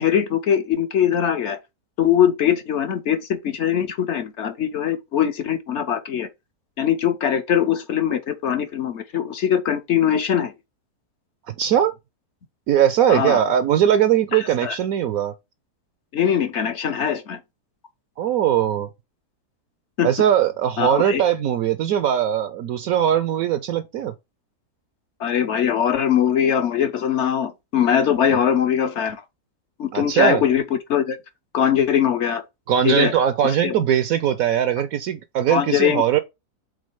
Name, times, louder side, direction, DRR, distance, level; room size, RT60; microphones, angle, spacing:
voice 1, 0.0-1.6 2.0-6.3 6.8-10.5 13.1-13.4 14.3-14.8 16.1-17.4 20.0-20.1 20.8-21.2 25.2-29.2 29.8-31.2 31.5-32.4 32.8-33.1 33.4-33.7 35.5-36.2, left 9 dB, 55° left, 0.9 m, -21 dB
voice 2, 11.5-11.9 12.7-15.3 18.2-18.9 20.0-24.1 29.9-30.4 32.7-36.2, right 10 dB, 70° right, 0.9 m, -20 dB
5.2 x 3.9 x 4.7 m
omnidirectional pair, 1.7 m